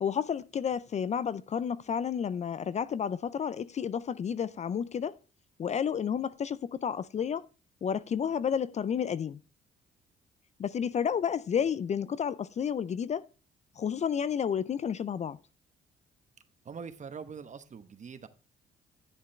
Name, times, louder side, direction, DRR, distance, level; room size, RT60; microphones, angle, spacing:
voice 1, 0.0-5.2 5.6-7.5 7.8-9.4 10.6-13.3 13.8-15.4, left 7 dB, 40° left, 0.4 m, -31 dB
voice 2, 16.6-18.3, right 6 dB, 40° right, 1.0 m, -43 dB
10.5 x 7.3 x 3.2 m
cardioid pair, 75°, 18 cm